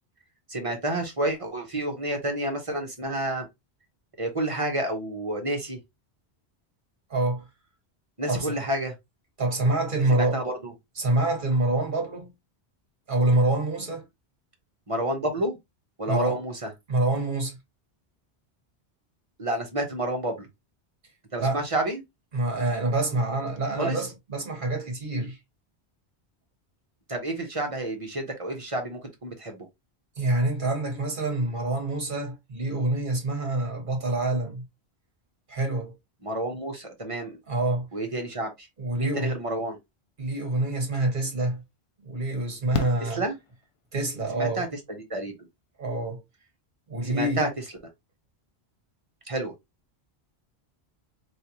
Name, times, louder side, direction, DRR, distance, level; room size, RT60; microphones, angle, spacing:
voice 1, 0.5-3.5 4.2-5.8 8.2-8.9 10.1-10.7 14.9-15.6 16.0-16.7 19.4-20.5 21.3-22.0 23.8-24.0 27.1-29.7 36.2-37.4 37.9-38.7 39.0-39.8 43.0-43.3 44.3-45.3 47.0-47.5 49.3-49.5, right 1 dB, 35° right, 1.0 m, -30 dB
voice 2, 7.1-7.4 8.3-8.6 9.4-10.4 11.0-12.3 13.1-14.0 16.1-16.4 16.9-17.6 21.4-21.6 22.3-25.4 30.2-34.6 35.5-36.0 37.5-37.9 38.8-39.4 40.2-41.6 42.0-43.2 43.9-44.6 45.8-46.2 46.9-47.4, right 2 dB, 50° right, 1.5 m, -26 dB
Fireworks, 41.0-41.1 42.7-44.0 45.8-45.9 46.1-46.2, left 6 dB, 60° left, 0.3 m, -34 dB
3.5 x 3.4 x 2.8 m
omnidirectional pair, 1.1 m